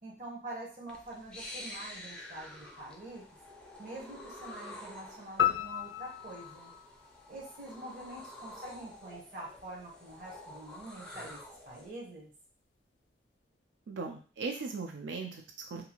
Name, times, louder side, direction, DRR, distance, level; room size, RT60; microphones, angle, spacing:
voice 1, 0.0-3.3 3.8-6.7 7.3-12.3, right 1 dB, 45° right, -4 dB, 0.9 m, -45 dB
sound 1, 0.9-11.9, left 1 dB, 5° left, 0.4 m, -49 dB
sound 2, 5.4-7.9, left 11 dB, 85° left, 0.4 m, -33 dB
voice 2, 13.9-15.8, right 4 dB, 80° right, 3 dB, 0.4 m, -38 dB
2.7 x 2.4 x 2.9 m, 0.37 s
head